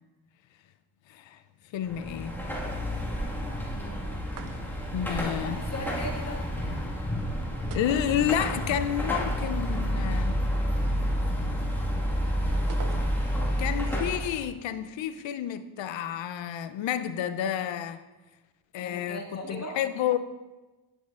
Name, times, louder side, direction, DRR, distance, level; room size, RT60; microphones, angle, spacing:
voice 1, 1.1-1.4 1.7-2.3 4.9-5.6 7.7-10.5 12.5-12.6 13.6-18.0 18.7-20.2, left 10 dB, 65° left, 12 dB, 0.6 m, -30 dB
Car passing by / Traffic noise roadway noise / Engine, 1.8-14.5, equal, 5° left, 1.6 m, -29 dB
voice 2, 3.7-4.1 5.4-6.9 18.8-19.8, equal, 30° left, -1 dB, 1.8 m, -39 dB
sound 1, 4.3-5.0 7.7-8.8 9.0-9.1 12.7-13.5, right 7 dB, 45° right, 0.5 m, -45 dB
9.7 x 6.3 x 2.4 m, 1.2 s
supercardioid pair, 55°, 48 cm